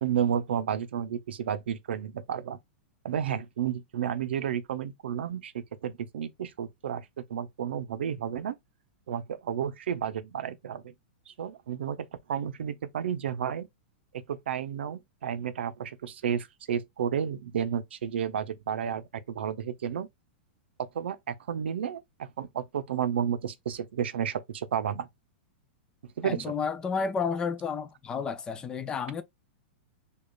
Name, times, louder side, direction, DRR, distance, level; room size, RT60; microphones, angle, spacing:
voice 1, 0.0-2.6 3.0-8.6 9.1-10.9 11.3-13.7 14.3-20.1 20.9-25.1 26.2-26.5, right 8 dB, 90° right, 0.5 m, -32 dB
voice 2, 26.2-29.2, left 5 dB, 15° left, 0.3 m, -31 dB
5.0 x 2.3 x 2.3 m
supercardioid pair, 155°, 6 cm